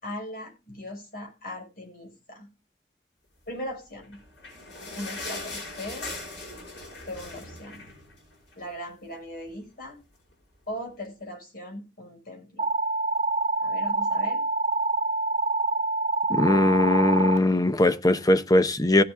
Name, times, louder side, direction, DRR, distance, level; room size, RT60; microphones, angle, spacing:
voice 1, 0.0-2.5 3.5-4.2 4.9-6.2 7.1-7.9 8.5-10.0 10.7-12.7 13.6-14.4, equal, 55° left, 5.7 m, -39 dB
sound 1, 4.0-8.7 9.1-9.2 9.5-9.6 10.3-10.4, left 2 dB, 90° left, 5.4 m, -39 dB
sound 2, 12.6-17.4, right 3 dB, 40° right, 0.7 m, -26 dB
voice 2, 16.3-19.0, left 1 dB, 20° left, 0.7 m, -20 dB
16.0 x 7.4 x 3.5 m
head